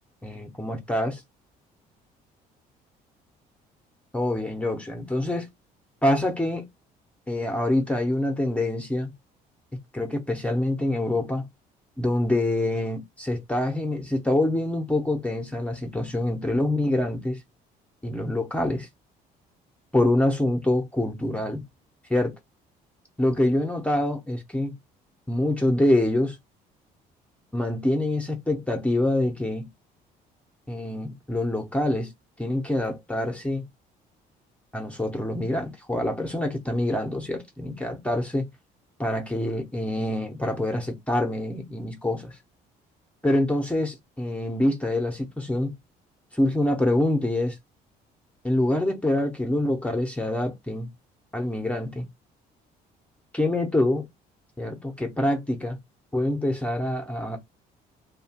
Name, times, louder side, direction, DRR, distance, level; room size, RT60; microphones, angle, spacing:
voice 1, 0.2-1.2 4.1-5.5 6.0-6.7 7.3-9.1 9.9-11.5 12.0-17.4 18.0-18.9 19.9-21.6 22.1-22.3 23.2-24.7 25.3-26.4 27.5-29.7 30.7-32.1 32.4-33.6 34.7-38.5 39.0-42.4 43.2-45.7 46.3-47.6 48.4-50.9 51.3-52.1 53.3-54.1 54.6-55.8 56.1-57.4, left 1 dB, 10° left, 0.6 m, -25 dB
2.8 x 2.1 x 2.8 m
cardioid pair, 110°, 17 cm